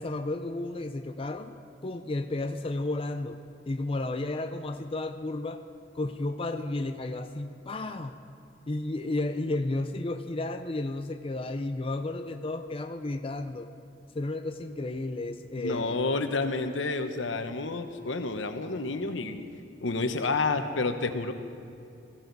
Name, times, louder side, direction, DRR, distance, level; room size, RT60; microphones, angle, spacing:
voice 1, 0.0-1.5 1.8-5.6 5.9-8.2 8.7-13.7 14.1-16.0, left 2 dB, 30° left, 6 dB, 0.5 m, -32 dB
voice 2, 15.6-19.5 19.8-21.3, left 3 dB, 80° left, 8 dB, 1.0 m, -29 dB
21.5 x 15.0 x 4.0 m, 2.6 s
head